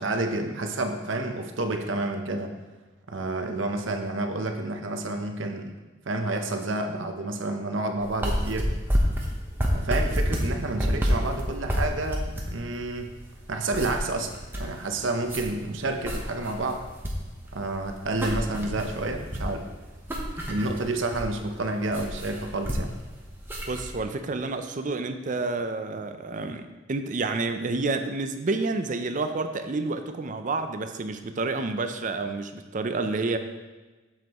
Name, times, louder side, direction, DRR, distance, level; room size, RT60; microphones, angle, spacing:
voice 1, 0.0-2.5 3.1-5.7 6.1-8.7 9.7-12.2 12.5-13.1 13.5-16.8 17.5-19.7 20.5-22.9, right 2 dB, 70° right, 5 dB, 0.8 m, -29 dB
sound 1, 8.0-24.0, equal, 10° right, 0.9 m, -29 dB
voice 2, 23.7-33.4, right 3 dB, 40° right, 8 dB, 0.5 m, -29 dB
7.6 x 7.4 x 3.0 m, 1.2 s
head